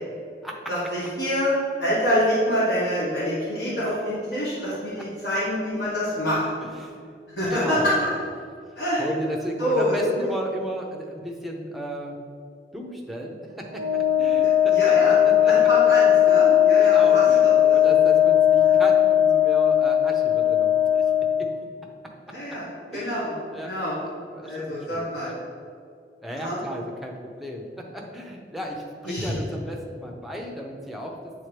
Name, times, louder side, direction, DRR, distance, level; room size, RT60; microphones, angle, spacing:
voice 1, 0.7-1.5 1.8-6.4 7.4-7.8 8.8-9.0 9.6-10.1 14.4-15.1 15.5-17.1 17.4-18.0 18.6-18.7 22.3-22.6 22.9-23.3 23.6-23.9 24.4-25.3 26.4-26.6 29.1-29.3, equal, 70° left, -8 dB, 1.4 m, -26 dB
voice 2, 6.6-7.0 7.5-8.2 9.0-12.2 12.7-15.7 16.8-21.0 21.4-21.5 22.9-23.7 24.0-25.4 26.2-31.3, equal, ahead, 0 dB, 0.6 m, -35 dB
Wind instrument woodwind instrument, 13.7-21.5, left 10 dB, 50° right, 0.5 m, -18 dB
7.9 x 3.6 x 3.3 m, 2.3 s
head